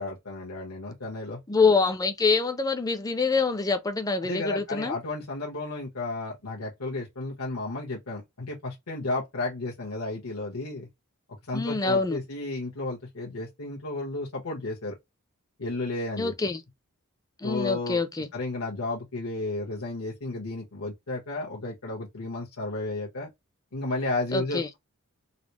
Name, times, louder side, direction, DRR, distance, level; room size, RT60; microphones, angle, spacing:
voice 1, 0.0-1.4 4.2-10.9 11.5-15.0 15.6-16.3 17.4-18.0 18.3-23.3 23.7-24.8, left 2 dB, 75° left, 1.2 m, -33 dB
voice 2, 1.5-5.0 11.5-12.2 16.2-16.6 17.4-18.3 24.3-24.7, left 4 dB, 15° left, 0.5 m, -25 dB
4.0 x 2.0 x 3.0 m
head